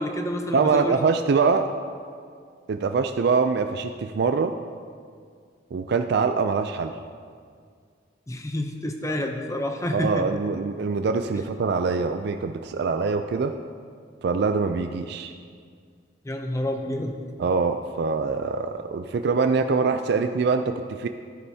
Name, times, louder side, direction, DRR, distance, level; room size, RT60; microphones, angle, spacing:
voice 1, 0.0-1.0 8.3-10.3 16.2-17.2, left 1 dB, 15° left, 4 dB, 0.6 m, -28 dB
voice 2, 0.5-1.7 2.7-4.5 5.7-7.0 9.9-13.6 14.2-15.3 17.4-21.1, right 4 dB, 60° right, 7 dB, 0.4 m, -24 dB
13.0 x 9.8 x 2.8 m, 2.1 s
head